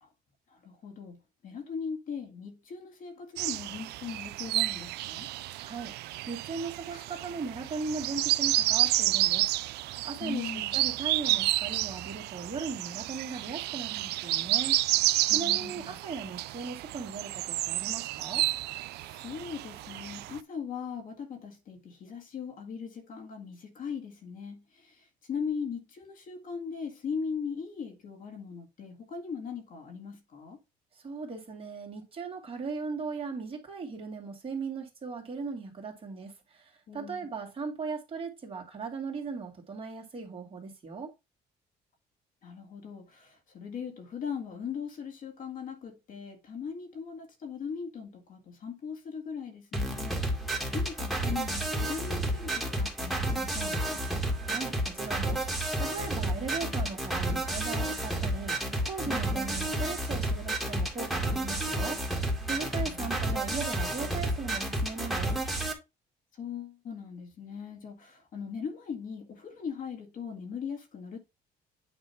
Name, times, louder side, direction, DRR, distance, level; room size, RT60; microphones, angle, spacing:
voice 1, 0.5-5.3 6.9-7.1 10.2-10.8 15.3-16.0 19.0-30.6 36.9-37.2 42.4-50.4 50.7-54.0 59.1-59.4 62.8-63.1 66.3-71.2, left 6 dB, 55° left, 1.9 m, -39 dB
sound 1, 3.4-20.4, right 17 dB, 75° right, 0.4 m, -30 dB
voice 2, 5.6-15.0 15.3-18.4 31.0-41.1 54.4-55.4 55.8-62.0 62.5-65.3, right 4 dB, 35° right, 2.3 m, -38 dB
sound 2, 49.7-65.7, right 1 dB, ahead, 2.0 m, -31 dB
8.9 x 3.0 x 5.6 m
cardioid pair, 110°, 17 cm